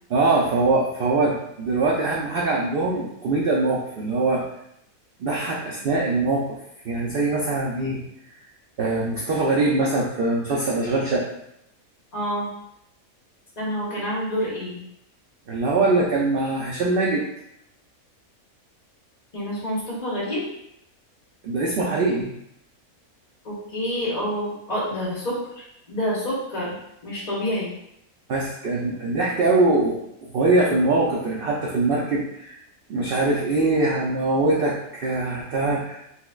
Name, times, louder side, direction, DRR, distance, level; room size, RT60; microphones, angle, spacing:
voice 1, 0.1-4.5 5.2-6.5 6.8-8.0 8.8-11.3 15.5-17.2 21.4-22.3 28.3-32.6 32.9-36.0, right 2 dB, 80° right, -3 dB, 0.5 m, -22 dB
voice 2, 12.1-12.5 13.6-14.8 19.3-20.4 23.4-25.4 25.9-26.7 27.0-27.7, equal, 30° left, -6 dB, 1.0 m, -27 dB
3.2 x 3.0 x 2.3 m, 0.78 s
omnidirectional pair, 1.5 m